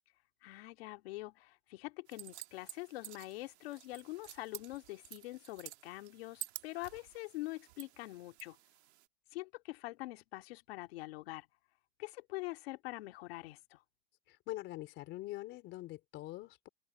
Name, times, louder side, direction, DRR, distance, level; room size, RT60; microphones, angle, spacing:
voice 1, 0.4-8.6 9.3-11.5 12.0-13.8, left 20 dB, 65° left, 2.5 m, -44 dB
sound 1, 2.1-9.1, right 17 dB, 80° right, 1.9 m, -51 dB
voice 2, 14.3-16.7, left 17 dB, 35° left, 4.1 m, -44 dB
supercardioid pair, 165°, 33 cm